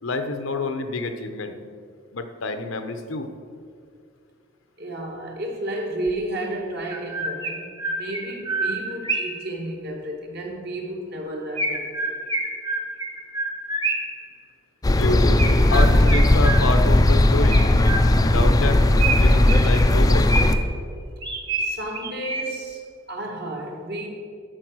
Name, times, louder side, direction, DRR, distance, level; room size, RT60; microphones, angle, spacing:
voice 1, 0.0-1.5 2.1-3.3 15.0-15.2 15.7-17.6 18.2-18.9 19.2-20.3, left 3 dB, 80° left, 0.9 m, -28 dB
voice 2, 4.8-12.1 21.6-24.1, right 1 dB, 55° right, 1.5 m, -32 dB
Chirp tweet, 6.1-6.2 6.8-9.5 11.6-14.2 15.4-17.0 17.5-18.4 19.0-20.8 21.2-22.7, right 2 dB, 25° right, 1.0 m, -28 dB
sound 1, 14.8-20.6, left 1 dB, 20° left, 0.4 m, -17 dB
13.0 x 4.8 x 6.3 m
head